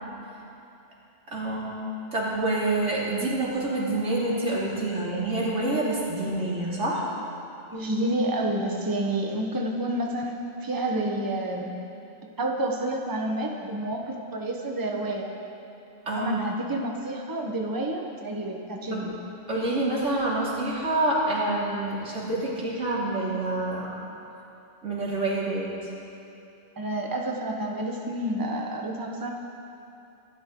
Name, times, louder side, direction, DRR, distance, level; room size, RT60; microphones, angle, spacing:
voice 1, 1.3-1.8 2.1-7.0 16.1-16.3 18.9-19.1 19.5-24.0 24.8-25.7, right 2 dB, 85° right, -6 dB, 3.4 m, -27 dB
voice 2, 7.7-11.7 12.4-15.3 16.1-19.1 26.8-29.3, right 1 dB, 20° right, 0 dB, 1.2 m, -29 dB
25.5 x 12.5 x 3.9 m, 2.7 s
omnidirectional pair, 1.2 m